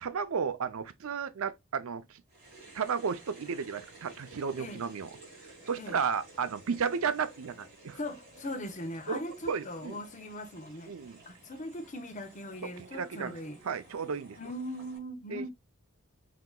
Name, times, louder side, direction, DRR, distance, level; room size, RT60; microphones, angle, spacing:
voice 1, 0.0-2.2 2.7-5.1 5.7-8.0 9.1-9.2 9.5-10.0 10.9-11.2 12.8-13.3 13.7-14.4 15.3-15.5, right 6 dB, 75° right, 0.5 m, -33 dB
sound 1, 2.3-15.0, right 2 dB, 50° right, 2.8 m, -54 dB
voice 2, 8.0-11.0 11.3-13.6 14.4-15.5, left 1 dB, 35° left, 0.8 m, -40 dB
5.9 x 2.9 x 2.3 m
head